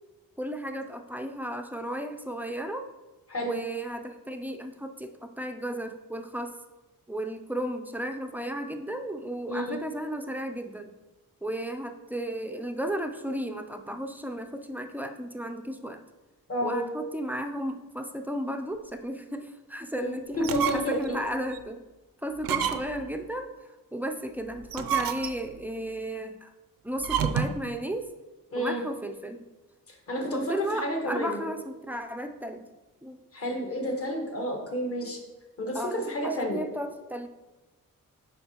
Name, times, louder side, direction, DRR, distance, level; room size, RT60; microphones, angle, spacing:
voice 1, 0.4-2.9 3.4-6.6 7.1-10.9 11.4-16.0 16.6-21.8 22.2-26.5 26.8-28.1 28.6-29.4 30.2-32.6 33.0-33.2 35.7-37.3, right 1 dB, 5° right, 5 dB, 0.3 m, -34 dB
voice 2, 9.5-9.8 16.5-16.9 20.0-21.2 28.5-28.8 29.9-31.4 33.3-35.2 35.6-36.7, equal, 40° left, 2 dB, 1.2 m, -30 dB
sound 1, 20.3-21.1 21.5-21.6 22.4-23.1 24.6-25.6 27.0-27.7, right 8 dB, 80° right, 0.5 m, -29 dB
9.9 x 3.7 x 2.9 m, 1.1 s
wide cardioid pair, 145°, 35 cm